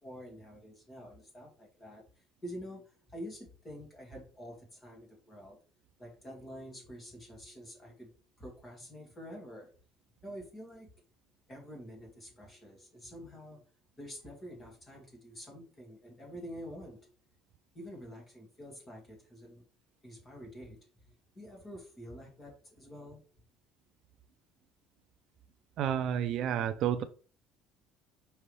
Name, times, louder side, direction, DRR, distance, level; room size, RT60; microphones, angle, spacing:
voice 1, 0.0-2.0 2.4-2.8 3.1-5.6 6.0-8.1 8.4-9.7 10.2-10.9 11.5-13.6 14.0-17.1 17.7-19.6 20.0-20.9 21.4-23.2, equal, 15° left, 2.2 m, -47 dB
voice 2, 25.8-27.0, right 9 dB, 45° right, 0.4 m, -30 dB
5.6 x 5.3 x 3.3 m
cardioid pair, 180°, 0 cm